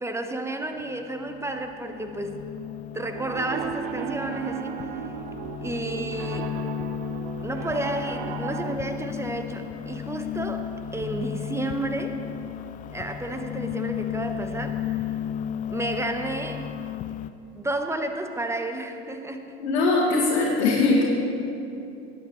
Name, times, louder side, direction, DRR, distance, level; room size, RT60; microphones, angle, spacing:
voice 1, 0.0-2.5 2.9-5.0 5.6-6.6 7.4-12.2 12.9-15.2 15.7-16.7 17.5-19.6, right 1 dB, 10° right, 6 dB, 0.8 m, -31 dB
sound 1, 0.8-17.3, left 10 dB, 25° left, 0.3 m, -34 dB
Piano, 3.1-8.8, right 9 dB, 55° right, 0.7 m, -35 dB
voice 2, 19.6-21.0, left 3 dB, 70° left, -6 dB, 1.8 m, -21 dB
18.0 x 8.9 x 3.1 m, 2.7 s
figure-of-eight pair, 70°, 33 cm